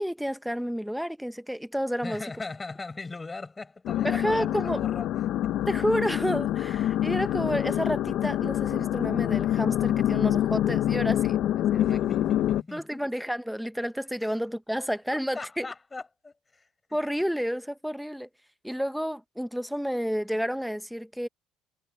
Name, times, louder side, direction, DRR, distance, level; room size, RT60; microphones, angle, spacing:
voice 1, 0.0-2.2 4.0-4.8 5.7-12.0 12.7-15.7 16.9-18.3 18.6-21.3, equal, ahead, 0.8 m, -30 dB
voice 2, 2.0-5.5 7.1-7.2 11.7-13.0 14.2-14.3 15.3-16.6, left 3 dB, 15° left, 4.9 m, -39 dB
sound 1, 3.9-12.6, left 12 dB, 55° left, 0.7 m, -26 dB
cardioid pair, 125°, 0 cm